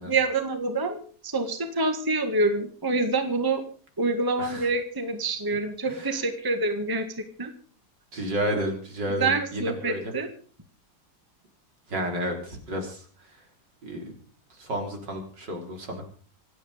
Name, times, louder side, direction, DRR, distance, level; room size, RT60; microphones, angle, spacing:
voice 1, 0.1-3.6 4.0-7.1 7.4-7.5 9.2-10.3, right 3 dB, 10° right, 7 dB, 1.7 m, -26 dB
voice 2, 4.4-4.7 5.8-6.2 8.1-10.1 11.9-13.4 13.8-14.1 14.5-16.0, equal, 75° right, 3 dB, 4.5 m, -32 dB
26.0 x 9.4 x 5.1 m, 0.43 s
omnidirectional pair, 1.9 m